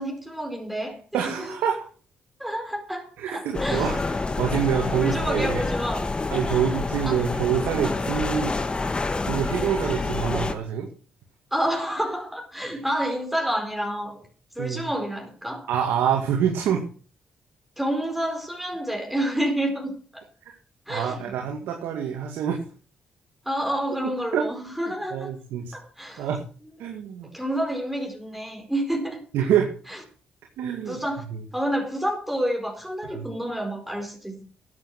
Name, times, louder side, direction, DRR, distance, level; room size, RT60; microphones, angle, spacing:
voice 1, 0.0-1.5 2.4-4.0 5.0-6.1 7.0-7.2 7.8-8.0 11.5-14.2 14.5-15.7 17.8-20.3 20.9-21.3 23.4-25.3 25.7-26.3 27.3-29.2 30.9-31.2 31.5-34.4, right 1 dB, 5° right, 4.7 m, -29 dB
voice 2, 1.1-1.8 3.2-5.6 6.3-8.6 8.8-8.9 9.2-10.9 14.6-14.8 15.7-16.8 20.4-20.6 20.9-22.6 24.3-24.5 25.1-25.7 26.2-26.4 26.8-27.3 29.3-29.7 30.6-31.0 33.1-33.3, right 8 dB, 85° right, 2.2 m, -26 dB
sound 1, 3.5-10.5, left 3 dB, 30° left, 1.6 m, -27 dB
13.5 x 8.7 x 6.0 m
cardioid pair, 75°, 4 cm